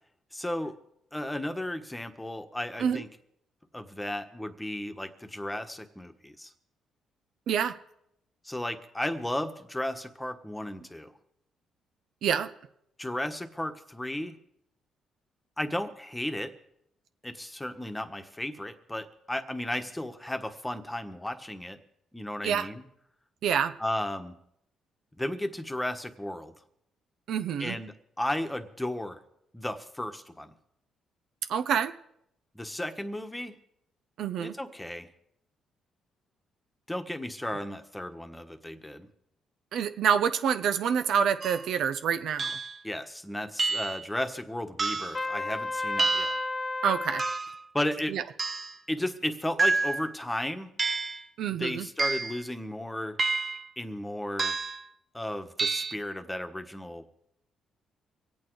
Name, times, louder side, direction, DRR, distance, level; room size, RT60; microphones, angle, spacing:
voice 1, 0.3-0.7 1.1-3.1 3.7-6.5 8.4-11.1 13.0-14.4 15.6-16.5 17.2-21.8 22.1-22.8 23.8-24.3 25.2-26.5 27.6-29.2 29.5-30.5 32.5-33.5 34.4-35.1 36.9-39.1 42.8-46.4 47.7-48.1 48.9-50.7 51.5-53.2 53.8-54.6 55.1-57.0, left 1 dB, 10° left, 7 dB, 1.4 m, -34 dB
voice 2, 7.5-7.8 12.2-12.5 22.4-22.7 23.4-23.7 27.3-27.8 31.5-31.9 34.2-34.5 39.7-42.5 46.8-47.2 48.1-48.2 51.4-51.9, right 7 dB, 75° right, 10 dB, 0.8 m, -27 dB
sound 1, 41.4-41.7 42.4-42.8 43.6-44.1 44.8-45.2 46.0-46.5 47.2-47.6 48.4-48.8 49.6-50.1 50.8-51.2 52.0-52.4 53.2-53.7 54.4-54.9 55.6-55.9, right 4 dB, 35° right, 0.7 m, -29 dB
Trumpet, 45.1-47.4, left 2 dB, 30° left, 0.7 m, -32 dB
25.0 x 8.7 x 4.8 m, 0.76 s
cardioid pair, 90°, 0 cm